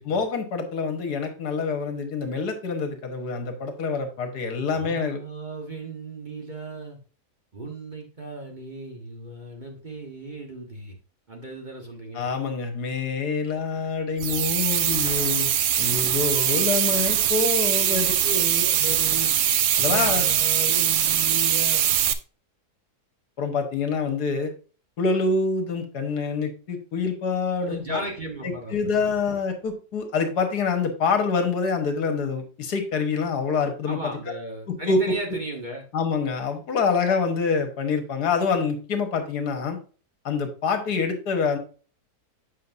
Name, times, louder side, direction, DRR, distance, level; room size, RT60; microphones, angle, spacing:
voice 1, 0.1-5.2 12.1-15.5 15.8-18.1 19.8-20.2 23.4-24.5 25.0-28.0 28.4-34.0 34.7-35.0 35.9-39.8 40.3-41.6, left 5 dB, 75° left, 6 dB, 1.7 m, -26 dB
voice 2, 4.7-7.0 7.5-10.9 11.3-12.3 16.5-16.7 17.8-19.3 19.7-21.9 27.6-28.7 33.9-35.8, right 2 dB, 30° right, 1 dB, 1.1 m, -36 dB
sound 1, 14.2-22.1, right 10 dB, 75° right, 0.6 m, -22 dB
7.5 x 6.1 x 2.6 m, 0.38 s
omnidirectional pair, 1.8 m